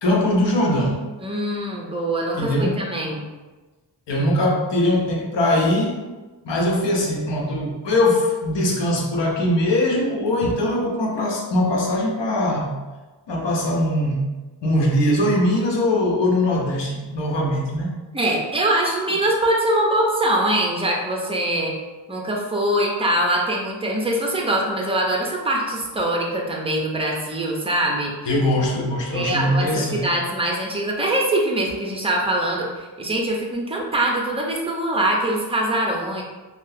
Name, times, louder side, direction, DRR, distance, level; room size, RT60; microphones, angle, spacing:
voice 1, 0.0-1.0 2.4-2.8 4.1-6.0 6.4-12.7 13.3-14.3 14.6-18.0 28.2-30.1, left 1 dB, 75° left, -1 dB, 0.8 m, -21 dB
voice 2, 1.2-3.3 18.1-21.7 22.1-28.1 29.1-36.2, right 1 dB, 15° right, -1 dB, 0.6 m, -23 dB
3.8 x 2.0 x 2.7 m, 1.2 s
cardioid pair, 85°, 43 cm